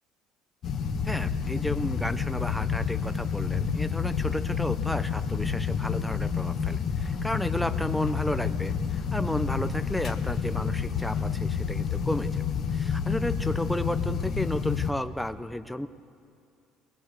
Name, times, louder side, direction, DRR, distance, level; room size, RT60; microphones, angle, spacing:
sound 1, 0.6-14.9, left 6 dB, 35° left, 1.3 m, -29 dB
voice 1, 1.1-12.4 12.7-15.9, left 1 dB, ahead, 11 dB, 0.6 m, -33 dB
23.5 x 19.5 x 8.2 m, 2.5 s
cardioid pair, 160°, 0 cm